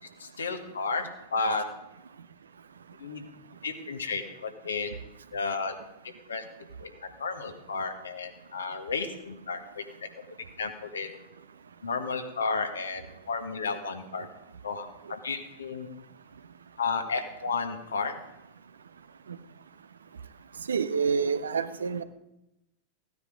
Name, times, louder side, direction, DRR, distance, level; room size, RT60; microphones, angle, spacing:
voice 1, 0.2-1.6 3.0-3.2 3.6-4.9 5.3-5.7 6.3-6.4 6.8-6.9 7.2-9.8 10.6-11.1 11.8-14.3 14.6-15.9 16.8-18.1, left 4 dB, 70° left, 5 dB, 1.7 m, -32 dB
voice 2, 20.7-22.0, right 5 dB, 70° right, 12 dB, 0.8 m, -27 dB
16.0 x 9.5 x 5.2 m, 0.89 s
figure-of-eight pair, 90°, 0 cm